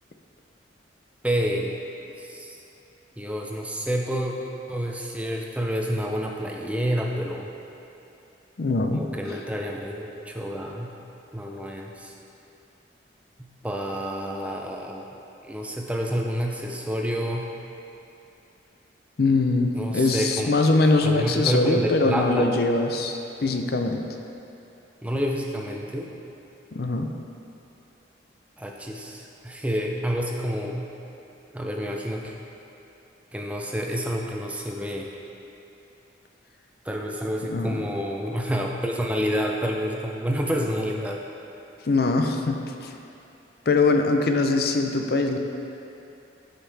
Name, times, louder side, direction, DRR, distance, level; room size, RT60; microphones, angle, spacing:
voice 1, 1.2-1.7 2.2-2.6 3.2-4.3 4.7-7.5 8.9-10.9 11.3-12.1 13.6-15.0 15.4-17.5 19.7-20.5 21.0-22.5 25.0-26.1 28.6-30.9 31.5-32.3 33.3-35.1 36.8-41.2, equal, 5° right, 0 dB, 0.5 m, -28 dB
voice 2, 8.6-9.0 19.2-24.0 26.7-27.1 37.5-37.8 41.9-42.9 43.7-45.4, left 3 dB, 55° left, 5 dB, 0.5 m, -22 dB
13.5 x 5.6 x 3.4 m, 2.8 s
head